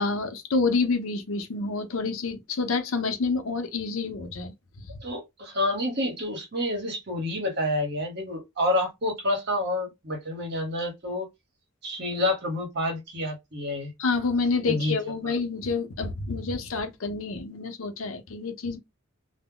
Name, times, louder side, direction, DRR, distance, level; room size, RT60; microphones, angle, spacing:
voice 1, 0.0-4.5 14.0-18.8, left 4 dB, 65° left, 0.6 m, -28 dB
voice 2, 5.0-11.3 11.8-13.9 14.6-14.9 15.2-15.3, left 1 dB, 50° right, 1.1 m, -28 dB
2.1 x 2.1 x 3.6 m
head